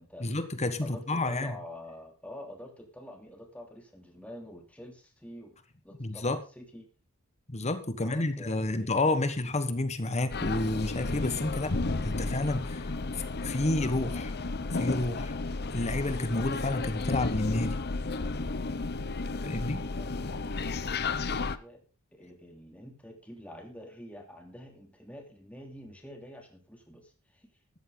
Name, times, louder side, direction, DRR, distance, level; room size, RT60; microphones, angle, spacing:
voice 1, 0.2-1.5 6.0-6.4 7.5-11.8 12.0-12.8 13.4-14.3 14.7-15.3 15.7-17.8 19.4-19.8, left 2 dB, 30° left, 1.4 m, -30 dB
voice 2, 0.8-5.6 5.8-6.9 8.0-9.2 19.2-19.5 19.8-20.6 20.9-21.8 22.1-27.5, left 1 dB, 5° left, 3.0 m, -47 dB
sound 1, 10.3-21.6, left 3 dB, 50° left, 0.9 m, -33 dB
14.0 x 12.5 x 4.0 m
head